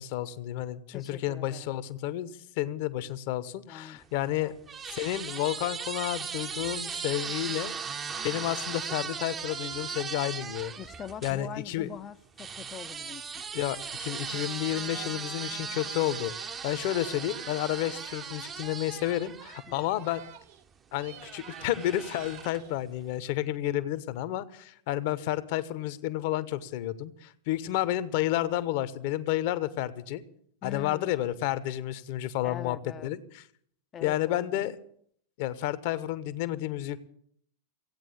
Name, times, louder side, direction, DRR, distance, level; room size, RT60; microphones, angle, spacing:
voice 1, 0.0-2.3 2.6-4.6 4.9-7.7 8.2-10.7 11.2-11.9 13.5-16.3 16.6-20.2 20.9-30.2 30.6-32.8 33.0-33.4 34.0-34.8 35.4-37.0, left 14 dB, 50° left, 1.0 m, -31 dB
voice 2, 0.9-1.7 3.7-4.0 4.4-4.5 10.8-13.5 19.7-20.0 30.6-31.3 32.4-33.1 33.9-34.7, left 9 dB, 25° left, 0.6 m, -43 dB
sound 1, 4.0-11.4 12.4-20.3 21.2-22.8, right 6 dB, 20° right, 0.8 m, -38 dB
Singing, 14.8-18.6 18.9-20.7 20.9-22.8, right 10 dB, 50° right, 1.2 m, -51 dB
16.0 x 9.1 x 8.6 m
figure-of-eight pair, 90°, 0 cm